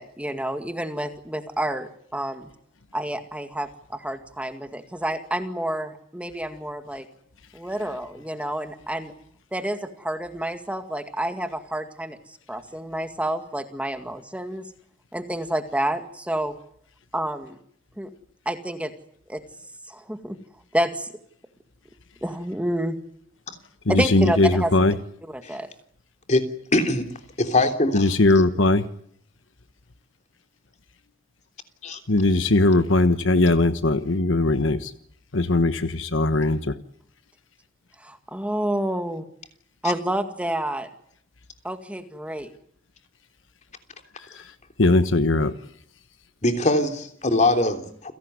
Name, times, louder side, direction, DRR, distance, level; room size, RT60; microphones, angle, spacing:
voice 1, 0.0-2.5 2.9-7.0 7.5-9.1 9.5-14.7 15.1-16.5 17.1-17.6 18.0-18.1 18.5-18.9 19.3-19.4 19.9-20.4 20.7-21.1 22.2-23.0 23.9-24.9 25.3-25.7 38.0-39.2 39.8-40.9 41.6-42.5, right 1 dB, 5° right, 7 dB, 2.0 m, -29 dB
voice 2, 23.9-24.9 27.9-28.8 32.1-34.9 35.3-36.7 44.8-45.5, left 2 dB, 70° left, 11 dB, 1.3 m, -19 dB
voice 3, 26.7-27.1 27.4-28.1 31.8-32.0 46.4-48.1, left 2 dB, 35° left, 6 dB, 3.3 m, -22 dB
29.5 x 17.5 x 9.6 m, 0.66 s
head